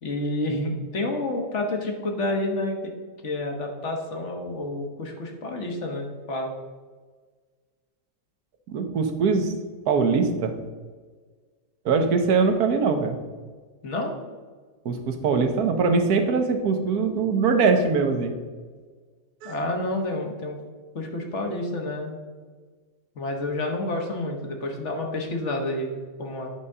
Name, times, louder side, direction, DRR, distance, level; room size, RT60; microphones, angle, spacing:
voice 1, 0.0-2.9 3.2-6.5 13.8-14.1 19.4-20.6 20.9-22.2 23.1-26.5, left 2 dB, 45° left, 3 dB, 1.4 m, -29 dB
voice 2, 8.7-9.5 9.9-10.5 11.8-13.1 14.8-18.3 19.4-19.6, right 4 dB, 60° right, 6 dB, 1.4 m, -22 dB
9.9 x 4.1 x 6.6 m, 1.5 s
omnidirectional pair, 1.9 m